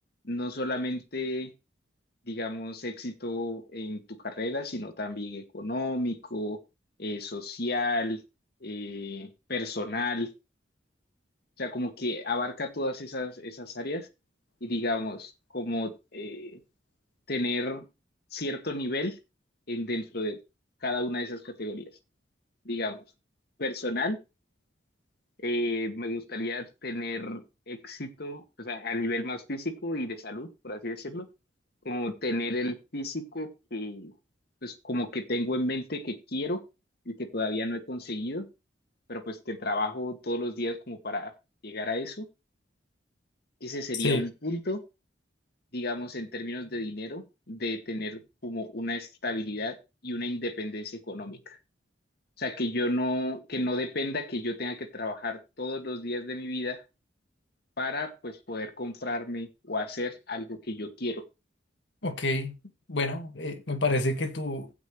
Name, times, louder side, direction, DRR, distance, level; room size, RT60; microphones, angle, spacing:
voice 1, 0.2-1.5 2.3-6.6 7.0-8.2 8.6-10.3 11.6-14.1 14.6-16.6 17.3-17.8 18.3-19.2 19.7-20.4 20.8-21.9 22.7-23.0 23.6-24.2 25.4-31.3 31.8-34.1 34.6-36.6 37.1-38.5 39.1-41.3 41.6-42.3 43.6-44.8 45.7-49.8 50.0-51.6 52.4-56.8 57.8-61.2, left 1 dB, 60° left, 2.1 m, -32 dB
voice 2, 62.0-62.5 62.9-64.7, left 2 dB, 75° left, 1.9 m, -28 dB
16.0 x 6.0 x 3.2 m
head